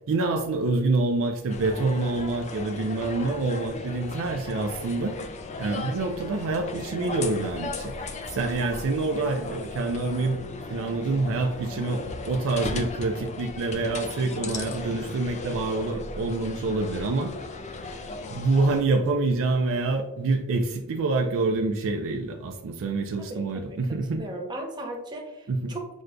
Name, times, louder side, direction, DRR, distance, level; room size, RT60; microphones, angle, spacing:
voice 1, 0.1-5.1 5.6-17.3 18.3-24.2 25.5-25.7, right 3 dB, 60° right, 4 dB, 0.4 m, -26 dB
sound 1, 1.5-18.8, left 3 dB, 30° left, 0.3 m, -37 dB
voice 2, 23.2-23.8 24.1-25.9, right 1 dB, 20° right, 0 dB, 0.7 m, -37 dB
6.2 x 2.2 x 2.5 m, 0.94 s
head